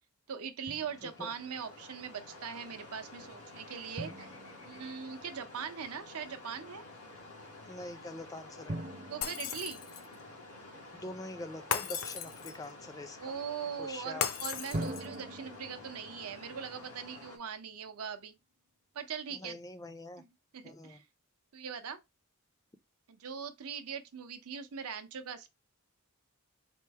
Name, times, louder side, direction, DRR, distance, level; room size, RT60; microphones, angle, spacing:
voice 1, 0.3-4.3 4.6-6.8 9.1-9.8 13.2-18.3 18.9-19.6 20.2-20.3 20.5-21.0 21.5-22.0 23.1-25.5, right 7 dB, 75° right, 0.6 m, -41 dB
sound 1, 0.7-17.4, left 2 dB, 90° left, 1.4 m, -51 dB
Drum, 0.7-1.4 4.0-5.7 8.7-11.2 14.7-17.9, right 1 dB, 35° right, 0.6 m, -44 dB
voice 2, 1.0-1.3 7.7-8.8 11.0-13.3 13.8-14.2 19.3-20.2 20.6-21.0, left 2 dB, 15° left, 0.4 m, -44 dB
Shatter, 9.2-10.2 11.7-12.7 14.2-15.2, left 7 dB, 70° left, 0.5 m, -36 dB
4.3 x 2.0 x 4.5 m
head